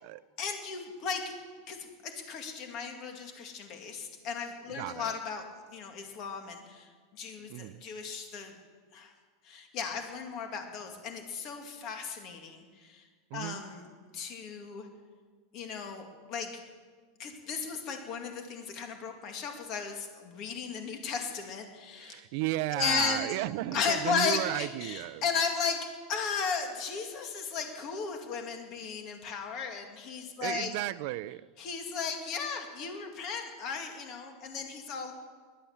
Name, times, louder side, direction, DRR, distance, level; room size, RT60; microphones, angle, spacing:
voice 1, 0.4-1.3 1.7-5.4 5.7-8.5 8.9-9.1 9.4-13.0 13.3-13.9 14.1-14.9 15.5-16.5 17.2-22.2 22.7-23.3 23.7-25.8 26.1-30.7 31.6-35.1, left 6 dB, 35° left, 4 dB, 2.2 m, -35 dB
voice 2, 4.7-5.1 7.5-7.8 13.3-13.6 22.0-25.2 30.4-31.4, right 17 dB, 50° right, 17 dB, 0.4 m, -34 dB
21.5 x 9.0 x 7.2 m, 1.5 s
supercardioid pair, 165°, 0 cm